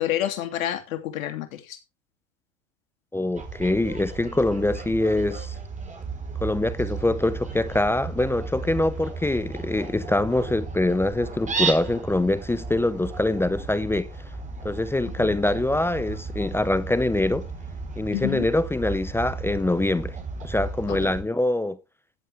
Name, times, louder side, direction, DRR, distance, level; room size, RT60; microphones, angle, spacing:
voice 1, 0.0-1.8 15.2-15.4 18.1-18.5 20.9-21.1, left 12 dB, 80° left, 3.1 m, -29 dB
voice 2, 3.1-5.6 6.4-14.1 14.6-17.5 18.0-20.2 20.4-21.8, left 2 dB, 5° left, 0.6 m, -24 dB
Fowl, 3.4-21.2, right 4 dB, 20° right, 4.4 m, -34 dB
13.5 x 8.6 x 3.5 m
supercardioid pair, 120°, 40 cm